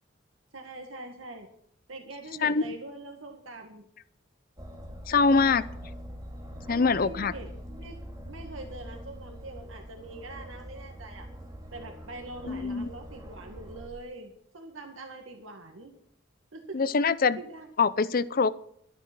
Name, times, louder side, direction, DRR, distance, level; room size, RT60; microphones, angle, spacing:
voice 1, 0.5-1.5 1.9-3.9 6.7-11.3 11.7-15.9 16.5-16.8 17.4-17.7, right 2 dB, 85° right, 3 dB, 2.0 m, -43 dB
Aircraft, 4.6-13.9, equal, 20° right, 2.4 m, -43 dB
voice 2, 5.1-5.6 6.7-7.3 12.4-12.9 16.7-17.4 17.8-18.5, left 4 dB, 45° left, 16 dB, 0.5 m, -24 dB
12.5 x 10.5 x 6.1 m, 0.67 s
head